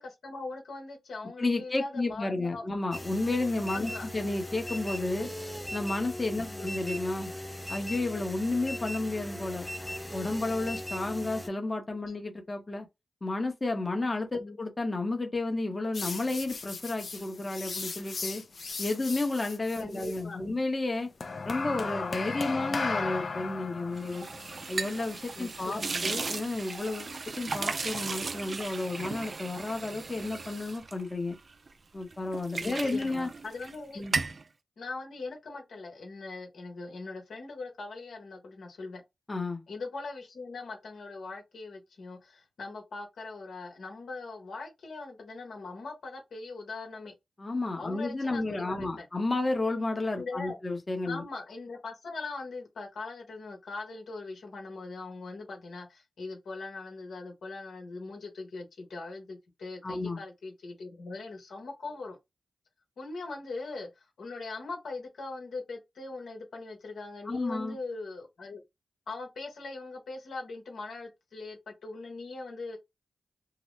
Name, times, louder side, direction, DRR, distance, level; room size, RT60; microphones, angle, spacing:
voice 1, 0.0-2.6 3.7-4.1 6.4-6.7 14.4-14.6 19.8-20.6 25.4-26.2 32.6-34.0 34.8-39.0 39.7-47.1 47.8-49.1 50.2-50.6 51.0-62.2 63.0-68.6 69.1-72.8, left 3 dB, 80° left, 1.0 m, -41 dB
voice 2, 1.4-5.3 5.7-7.3 7.7-9.7 10.1-12.9 13.2-18.4 18.8-21.1 21.4-24.3 24.7-31.4 31.9-33.3 34.0-34.1 39.3-39.6 47.4-51.2 59.8-60.2 67.3-67.8, left 2 dB, 35° left, 0.8 m, -32 dB
sound 1, 2.9-11.5, equal, 10° left, 0.5 m, -39 dB
sound 2, 15.9-20.2 21.2-26.6, left 4 dB, 60° left, 0.5 m, -36 dB
sound 3, 24.0-31.7 32.1-33.8 34.0-34.4, right 4 dB, 55° right, 0.4 m, -36 dB
2.8 x 2.0 x 3.1 m
cardioid pair, 45°, 0 cm